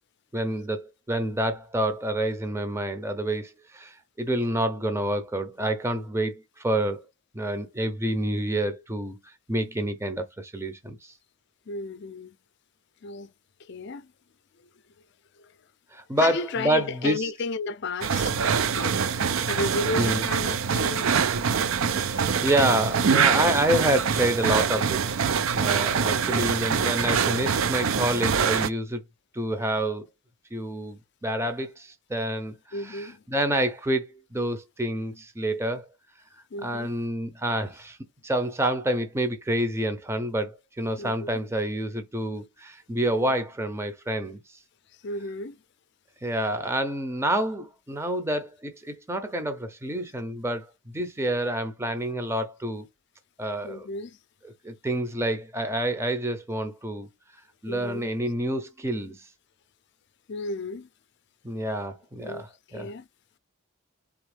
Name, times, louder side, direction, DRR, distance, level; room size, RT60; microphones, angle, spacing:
voice 1, 0.3-7.0 7.3-11.1 15.9-17.3 20.0-20.2 21.9-25.2 25.5-29.0 29.3-30.1 30.5-35.9 36.6-38.0 38.2-44.6 46.2-50.7 50.9-52.9 53.4-53.9 54.4-57.1 57.6-59.3 61.4-62.9, right 1 dB, 10° right, 0.6 m, -28 dB
voice 2, 11.7-12.3 13.0-13.3 13.7-14.1 15.4-15.5 16.2-18.4 18.7-19.0 19.5-21.3 26.1-26.5 32.7-33.2 36.5-36.9 41.0-41.4 45.0-45.6 53.6-54.2 57.7-58.1 60.3-60.9 62.2-62.4 62.7-63.1, left 3 dB, 55° left, 0.5 m, -33 dB
sound 1, 18.0-28.7, right 6 dB, 75° right, 0.5 m, -24 dB
4.4 x 3.5 x 3.3 m
head